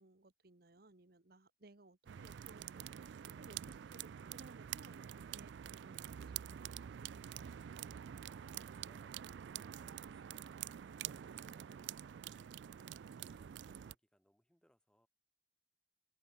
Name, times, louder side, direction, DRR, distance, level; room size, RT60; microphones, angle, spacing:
voice 1, 0.0-7.6, right 2 dB, 55° right, 1.3 m, -62 dB
sound 1, 2.1-13.9, right 10 dB, 75° right, 0.3 m, -47 dB
voice 2, 8.3-15.1, equal, 5° left, 4.3 m, -73 dB
head